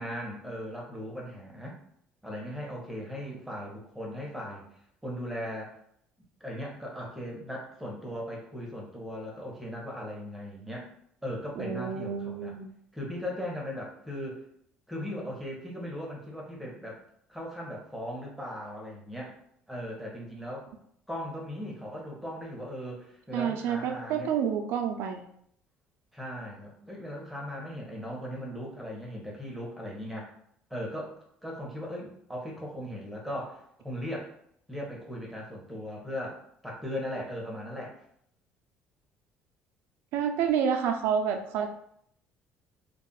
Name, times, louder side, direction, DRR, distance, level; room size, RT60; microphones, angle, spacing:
voice 1, 0.0-1.8 2.2-4.6 5.0-5.8 6.4-10.9 11.2-12.5 12.9-14.4 14.9-17.0 17.3-19.3 19.7-20.7 21.1-24.3 26.1-30.3 30.7-31.1 31.4-34.3 34.7-37.9, equal, 5° right, -2 dB, 0.8 m, -38 dB
voice 2, 11.6-12.7 23.3-25.2 40.1-41.7, right 7 dB, 75° right, 5 dB, 0.4 m, -29 dB
2.3 x 2.0 x 3.8 m, 0.69 s
cardioid pair, 115°, 4 cm